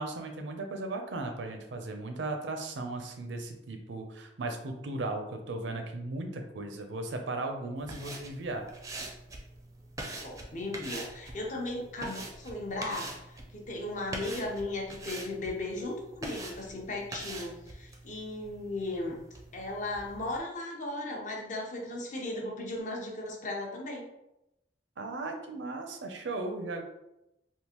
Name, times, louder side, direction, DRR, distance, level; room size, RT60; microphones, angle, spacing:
voice 1, 0.0-8.6 25.0-26.8, right 2 dB, 85° right, 4 dB, 0.5 m, -36 dB
sound 1, 7.8-20.4, right 2 dB, 20° right, 0.4 m, -44 dB
voice 2, 10.2-19.2 19.5-24.1, left 2 dB, 45° left, 0 dB, 0.6 m, -36 dB
3.6 x 2.4 x 2.9 m, 0.89 s
head